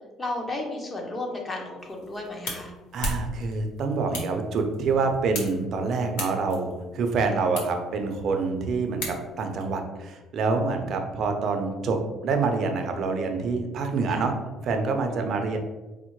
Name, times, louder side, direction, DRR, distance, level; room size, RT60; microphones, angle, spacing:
voice 1, 0.2-2.7 7.2-7.4 14.1-14.3 15.1-15.3, left 2 dB, 25° left, 1 dB, 0.8 m, -34 dB
sound 1, 1.8-9.6, left 1 dB, 85° left, 0.8 m, -38 dB
voice 2, 2.9-14.3 14.6-15.6, right 4 dB, 55° right, 4 dB, 0.5 m, -26 dB
4.2 x 2.0 x 3.0 m, 1.1 s
cardioid pair, 100°, 0 cm